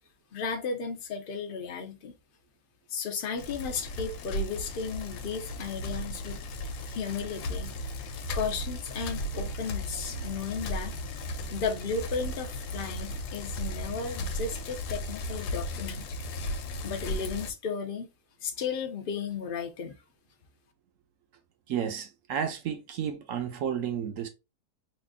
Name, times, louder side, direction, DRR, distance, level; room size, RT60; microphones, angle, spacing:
voice 1, 0.3-2.1 2.9-6.4 6.9-7.8 8.3-10.9 11.5-16.2 16.8-18.1 18.4-19.9, left 5 dB, 55° left, 0.6 m, -34 dB
Bicycle, 3.4-17.5, left 1 dB, 90° left, 1.2 m, -36 dB
voice 2, 21.7-24.3, right 8 dB, 65° right, 0.9 m, -32 dB
3.1 x 2.4 x 3.5 m
omnidirectional pair, 1.7 m